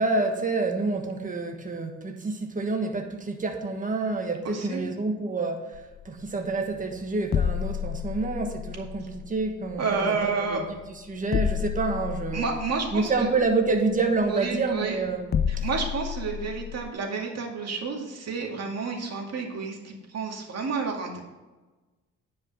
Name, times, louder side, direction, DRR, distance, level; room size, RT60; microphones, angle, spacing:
voice 1, 0.0-10.6 11.1-12.5 12.9-15.6, right 3 dB, 25° right, 4 dB, 1.4 m, -28 dB
voice 2, 4.4-4.8 9.8-10.6 12.3-13.3 14.2-15.0 15.5-21.2, right 4 dB, 55° right, 1 dB, 2.2 m, -30 dB
sound 1, 5.7-16.9, left 8 dB, 35° left, 0.4 m, -32 dB
9.8 x 5.4 x 5.4 m, 1.2 s
cardioid pair, 90°, 30 cm